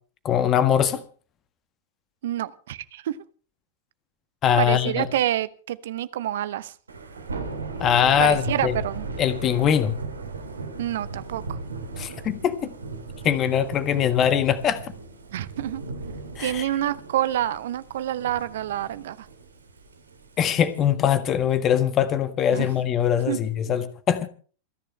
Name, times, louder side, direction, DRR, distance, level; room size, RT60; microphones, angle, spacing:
voice 1, 0.2-1.0 4.4-5.1 7.8-8.7 9.2-10.0 12.0-12.7 13.2-14.8 16.4-16.6 20.4-24.3, left 9 dB, 30° left, 1.6 m, -22 dB
voice 2, 2.2-3.2 4.6-6.7 8.2-9.1 10.8-11.6 15.3-15.8 16.4-19.3 22.5-22.7 23.3-23.4, right 12 dB, 60° right, 1.1 m, -27 dB
Thunder / Rain, 6.9-20.9, right 3 dB, 75° right, 3.0 m, -37 dB
28.5 x 10.5 x 3.3 m
figure-of-eight pair, 90°, 0 cm